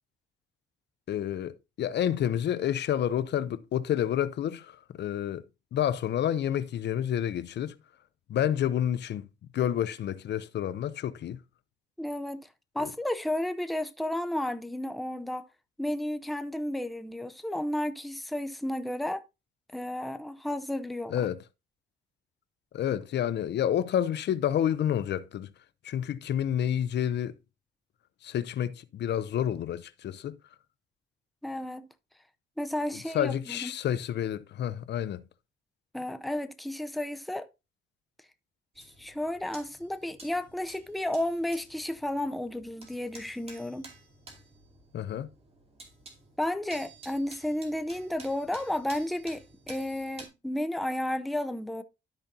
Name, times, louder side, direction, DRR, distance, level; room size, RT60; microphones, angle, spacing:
voice 1, 1.1-5.4 5.7-7.7 8.3-9.3 9.5-11.4 12.8-12.9 21.1-21.4 22.7-25.5 25.8-27.3 28.2-30.4 33.1-35.2 44.9-45.3, left 10 dB, 60° left, 0.6 m, -29 dB
voice 2, 12.0-12.5 12.7-15.4 15.8-19.2 19.7-21.2 31.4-31.8 32.6-33.7 35.9-37.5 38.8-43.9 46.4-51.8, left 1 dB, ahead, 0.6 m, -32 dB
sound 1, 38.8-50.3, right 3 dB, 30° right, 2.6 m, -52 dB
12.5 x 5.1 x 2.7 m
cardioid pair, 90°, 20 cm